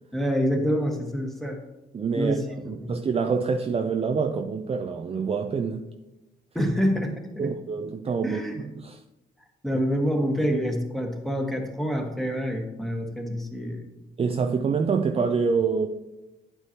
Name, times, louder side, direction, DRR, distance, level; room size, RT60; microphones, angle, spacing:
voice 1, 0.1-1.6 2.1-2.9 6.5-7.5 8.2-8.6 9.6-13.8, equal, ahead, 1.5 m, -27 dB
voice 2, 1.9-2.4 2.7-5.9 6.6-6.7 7.4-9.0 14.2-15.9, right 5 dB, 30° right, 0.5 m, -26 dB
9.4 x 8.0 x 2.9 m
cardioid pair, 90°, 20 cm